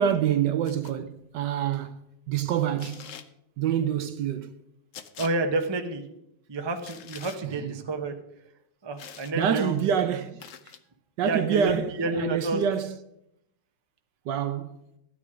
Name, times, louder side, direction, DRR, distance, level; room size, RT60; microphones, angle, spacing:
voice 1, 0.0-3.0 3.6-4.6 7.5-7.7 9.3-10.5 11.2-12.9 14.3-14.8, right 9 dB, 70° right, 1.2 m, -27 dB
sound 1, 0.6-0.9 2.8-3.3 4.9-5.3 6.8-7.4 9.0-9.3 10.4-10.8, left 8 dB, 65° left, 0.8 m, -44 dB
voice 2, 5.2-6.0 6.5-8.2 8.8-9.8 11.2-12.6, right 2 dB, 25° right, 0.6 m, -29 dB
13.5 x 9.4 x 4.9 m
omnidirectional pair, 2.2 m